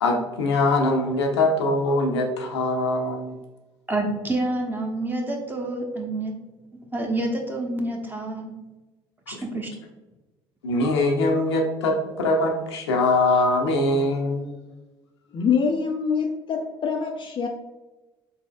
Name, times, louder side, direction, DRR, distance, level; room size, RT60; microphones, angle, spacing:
voice 1, 0.0-3.4 9.3-9.4 10.6-14.5, left 2 dB, 80° left, 2 dB, 0.6 m, -22 dB
voice 2, 3.9-6.3 6.9-8.5 9.3-9.7, right 2 dB, 15° right, 0 dB, 1.0 m, -28 dB
voice 3, 15.3-17.5, left 6 dB, 35° left, 3 dB, 0.5 m, -24 dB
4.1 x 4.1 x 2.4 m, 1.1 s
figure-of-eight pair, 55°, 14 cm